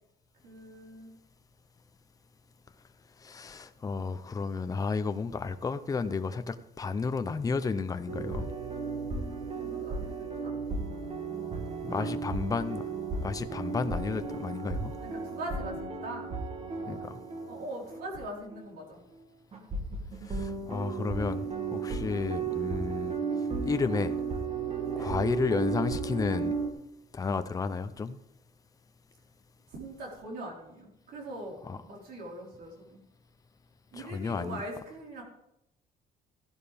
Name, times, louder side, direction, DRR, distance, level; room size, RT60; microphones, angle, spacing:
voice 1, 0.4-1.1 9.5-10.5 11.9-12.1 15.0-16.3 17.5-19.0 24.9-25.1 29.7-33.0 33.9-35.2, right 1 dB, 65° right, 4.5 m, -42 dB
voice 2, 3.2-8.5 11.8-12.8 13.2-14.9 16.9-17.2 20.3-23.2 23.6-24.1 25.0-26.5 27.1-28.2 31.6-31.8 33.9-34.6, left 4 dB, 20° left, 0.6 m, -32 dB
sound 1, 8.1-18.3 18.5-18.7 19.5-26.7, right 4 dB, 35° right, 2.0 m, -34 dB
14.5 x 11.5 x 3.5 m
cardioid pair, 110°, 17 cm